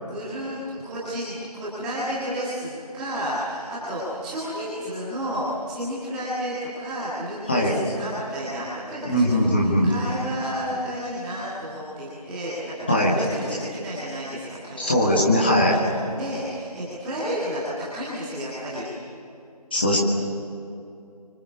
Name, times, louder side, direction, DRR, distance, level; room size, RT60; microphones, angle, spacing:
voice 1, 0.0-15.2 15.7-15.8 16.1-18.8 19.7-20.0, equal, 5° right, -10 dB, 1.7 m, -31 dB
voice 2, 9.0-9.9 12.9-13.1 14.8-15.8 19.7-20.0, equal, 15° left, -3 dB, 1.7 m, -20 dB
29.0 x 25.0 x 7.0 m, 2.6 s
figure-of-eight pair, 170°, 21 cm